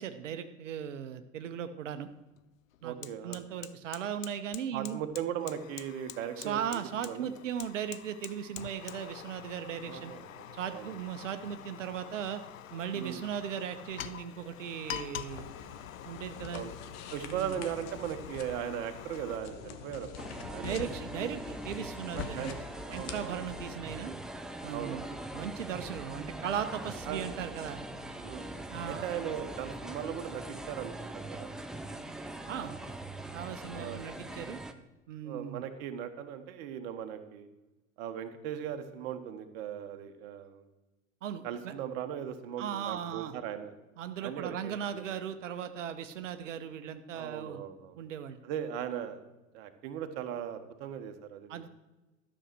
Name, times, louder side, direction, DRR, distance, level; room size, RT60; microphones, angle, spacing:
voice 1, 0.0-2.1 2.8-5.0 6.4-10.1 10.5-12.4 12.7-15.5 16.0-16.6 17.3-17.6 20.6-22.6 22.9-24.1 24.6-25.0 25.3-27.8 28.7-29.1 32.5-32.8 33.3-34.6 35.1-35.6 41.2-41.7 42.6-43.3 44.0-47.6 48.0-48.4 51.5-51.7, right 9 dB, 65° right, 9 dB, 0.9 m, -37 dB
Fire, 1.9-2.0 2.4-19.4, left 11 dB, 75° left, 0.6 m, -46 dB
voice 2, 2.8-3.4 4.7-7.3 9.8-10.9 12.9-13.2 16.5-16.7 17.1-21.0 22.1-22.6 22.9-23.4 24.7-25.0 27.1-27.2 28.2-28.5 28.9-31.5 33.7-34.0 35.2-37.5 38.0-40.7 41.4-43.7 44.2-45.1 47.1-48.0 48.4-49.2 49.5-51.7, right 9 dB, 50° right, 8 dB, 1.3 m, -38 dB
sound 1, 15.3-23.8, left 7 dB, 40° left, 1.2 m, -45 dB
sound 2, 20.2-34.7, right 1 dB, ahead, 0.3 m, -42 dB
12.5 x 6.5 x 6.2 m, 1.1 s
figure-of-eight pair, 85°, 40 cm